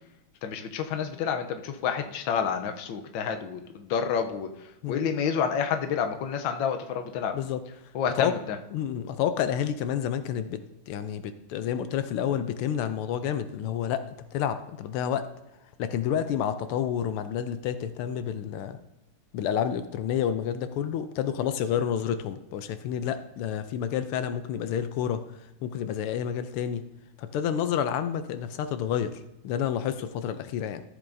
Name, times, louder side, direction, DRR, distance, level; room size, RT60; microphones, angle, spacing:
voice 1, 0.4-7.4 7.9-8.6, left 7 dB, 70° left, 6 dB, 1.4 m, -29 dB
voice 2, 8.7-10.6 10.9-14.0 14.3-15.2 15.8-18.8 19.3-25.2 25.6-26.8 27.2-30.8, left 9 dB, 90° left, 10 dB, 1.5 m, -29 dB
14.0 x 8.3 x 2.6 m, 0.92 s
omnidirectional pair, 2.3 m